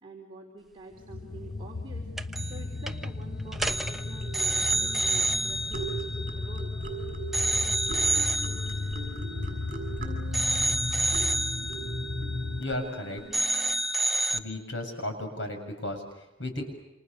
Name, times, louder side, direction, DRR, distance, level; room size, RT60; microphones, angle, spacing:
voice 1, 0.0-6.7, right 2 dB, 25° right, -1 dB, 4.0 m, -47 dB
sound 1, 1.0-12.6, left 2 dB, 45° left, 1.0 m, -35 dB
sound 2, 2.2-2.6 2.9-3.1 3.5-6.9 7.3-9.9 10.3-13.0 13.3-14.4, right 1 dB, ahead, 1.1 m, -29 dB
sound 3, 3.5-13.8, right 4 dB, 45° right, 7.2 m, -41 dB
voice 2, 12.6-13.2 14.3-16.6, left 1 dB, 75° left, 5 dB, 7.4 m, -34 dB
29.5 x 27.0 x 6.9 m, 0.93 s
head